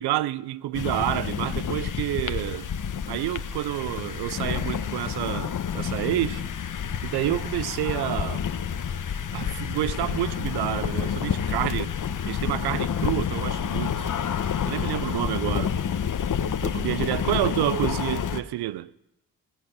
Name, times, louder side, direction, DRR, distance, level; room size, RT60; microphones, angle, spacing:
voice 1, 0.0-2.7 3.1-6.4 7.0-8.4 9.3-11.9 12.3-14.1 14.7-15.7 16.6-18.9, right 15 dB, 75° right, 0.5 m, -29 dB
sound 1, 0.7-18.4, left 7 dB, 50° left, 1.0 m, -29 dB
20.5 x 7.3 x 6.1 m
supercardioid pair, 45°, 39 cm